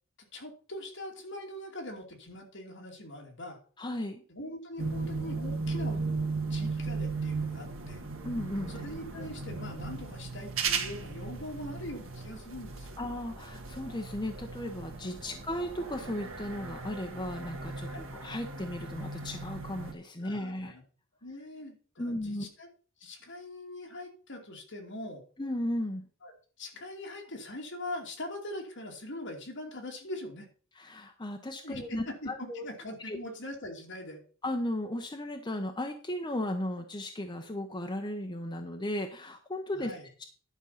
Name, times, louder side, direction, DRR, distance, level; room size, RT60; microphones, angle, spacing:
voice 1, 0.3-3.6 4.3-6.0 6.5-8.0 8.7-12.9 15.2-15.4 17.9-18.1 20.2-20.8 21.2-22.7 23.0-25.2 26.2-26.3 26.6-30.5 31.6-34.2 39.7-40.1, left 1 dB, 60° left, 1 dB, 2.7 m, -42 dB
voice 2, 3.8-4.2 8.2-8.7 9.2-9.3 13.0-20.7 22.0-22.5 25.4-26.1 30.8-32.6 33.0-33.2 34.4-39.9 40.2-40.3, left 1 dB, 20° left, 4 dB, 0.9 m, -35 dB
sound 1, 4.8-19.9, right 4 dB, 75° right, 1.6 m, -36 dB
11.0 x 5.5 x 5.7 m, 0.42 s
head